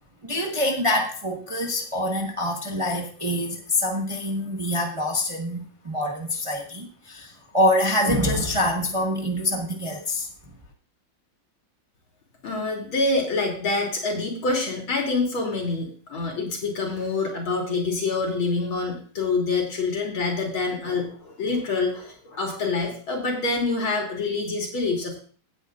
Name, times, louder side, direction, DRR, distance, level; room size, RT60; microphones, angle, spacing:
voice 1, 0.2-10.3, left 1 dB, 20° right, 1 dB, 1.1 m, -25 dB
voice 2, 12.4-25.2, left 3 dB, 75° left, 0 dB, 3.8 m, -26 dB
16.5 x 9.4 x 2.5 m, 0.43 s
omnidirectional pair, 2.3 m